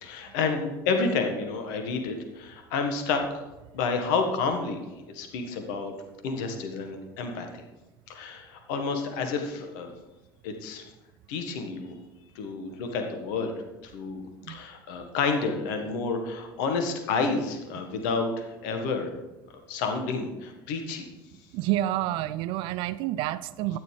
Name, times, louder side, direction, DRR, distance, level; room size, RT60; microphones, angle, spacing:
voice 1, 0.0-3.4 3.7-4.8 5.1-5.9 6.2-7.6 8.1-9.9 10.4-10.8 11.3-11.9 12.3-13.5 13.8-19.1 19.5-21.1, left 4 dB, 60° left, 5 dB, 1.4 m, -30 dB
voice 2, 21.5-23.8, right 14 dB, 50° right, 16 dB, 0.5 m, -28 dB
12.5 x 9.4 x 3.3 m, 1.1 s
figure-of-eight pair, 65°, 11 cm